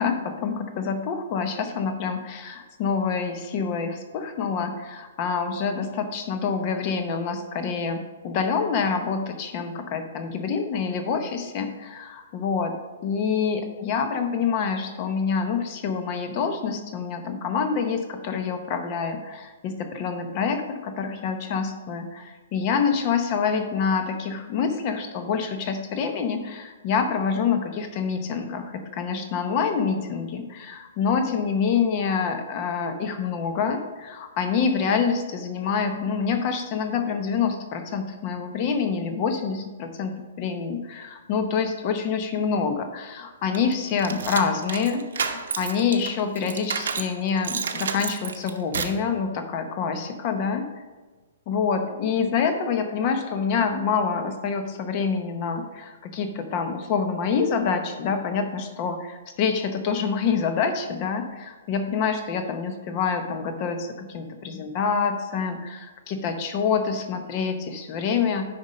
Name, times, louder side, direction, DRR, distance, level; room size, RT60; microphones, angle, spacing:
voice 1, 0.0-12.7 13.0-50.7 51.5-68.4, left 6 dB, 25° left, 6 dB, 0.8 m, -26 dB
sound 1, 43.5-47.1 47.4-49.0, right 6 dB, 75° right, 0.9 m, -30 dB
9.4 x 5.2 x 4.2 m, 1.3 s
hypercardioid pair, 175°, 0 cm